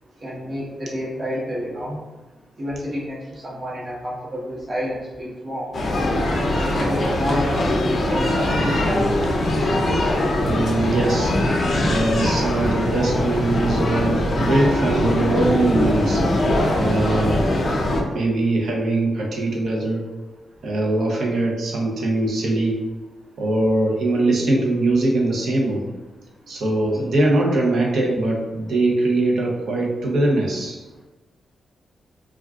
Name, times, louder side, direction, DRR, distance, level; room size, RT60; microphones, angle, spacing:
voice 1, 0.2-2.0 2.6-5.7 6.4-8.3 8.6-9.1, equal, 45° right, -6 dB, 1.0 m, -29 dB
sound 1, 5.7-18.0, left 1 dB, 55° left, 0.5 m, -21 dB
voice 2, 10.4-16.2 16.7-17.5 17.8-20.0 20.6-22.8 23.4-25.9 26.5-30.8, right 2 dB, 70° right, -2 dB, 0.7 m, -22 dB
2.4 x 2.3 x 3.4 m, 1.1 s
cardioid pair, 100°, 0 cm